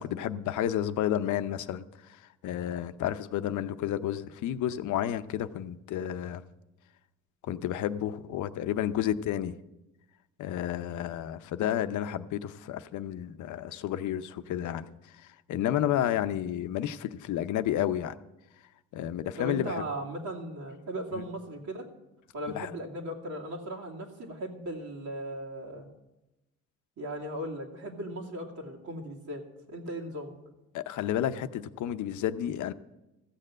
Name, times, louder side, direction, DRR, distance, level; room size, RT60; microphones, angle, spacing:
voice 1, 0.0-1.9 2.4-6.4 7.5-9.6 10.4-14.9 15.5-18.1 18.9-19.8 21.1-21.2 22.5-22.7 30.7-32.7, left 11 dB, 75° left, 12 dB, 0.7 m, -31 dB
voice 2, 19.4-21.9 22.3-25.9 27.0-30.3, right 1 dB, 70° right, -2 dB, 2.7 m, -37 dB
15.0 x 6.7 x 7.5 m, 0.99 s
cardioid pair, 90°, 30 cm